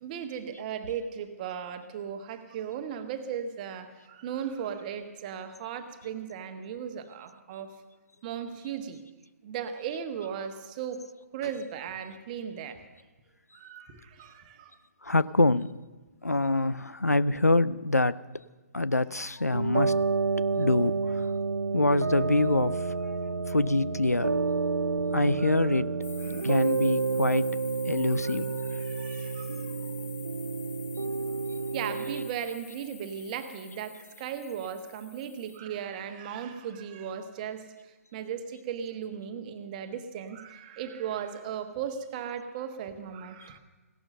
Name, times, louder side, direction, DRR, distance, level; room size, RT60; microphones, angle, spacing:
voice 1, 0.0-7.7 8.2-9.0 9.4-11.0 11.3-12.8 13.5-14.8 16.4-16.6 24.8-24.9 25.4-25.8 26.2-26.5 28.1-29.9 31.7-43.6, right 8 dB, 30° right, 8 dB, 1.4 m, -37 dB
voice 2, 15.0-15.8 16.2-18.2 18.7-20.0 20.6-21.3 21.7-22.8 23.5-24.3 25.1-25.9 26.4-27.6 27.9-28.8, left 2 dB, 85° left, 18 dB, 0.6 m, -25 dB
sound 1, 19.5-32.3, right 4 dB, 80° right, 0.5 m, -29 dB
sound 2, 26.0-35.6, left 9 dB, 15° left, 0.8 m, -48 dB
16.5 x 12.0 x 6.8 m, 1.2 s
figure-of-eight pair, 130°, 8 cm